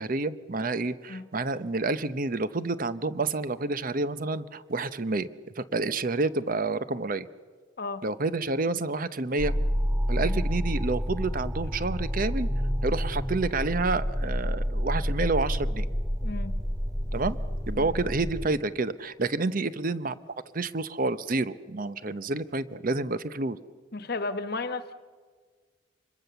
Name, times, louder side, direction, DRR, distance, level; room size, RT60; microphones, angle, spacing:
voice 1, 0.0-5.3 5.6-7.3 8.0-9.6 10.1-12.5 12.8-15.9 17.1-17.4 17.7-20.2 20.5-23.6, right 3 dB, 45° right, 14 dB, 0.8 m, -29 dB
sound 1, 9.4-18.5, equal, 15° right, 4.1 m, -29 dB
voice 2, 16.2-16.5 17.7-17.9 23.9-24.9, left 3 dB, 55° left, 11 dB, 1.3 m, -34 dB
26.0 x 21.5 x 6.9 m, 1.5 s
head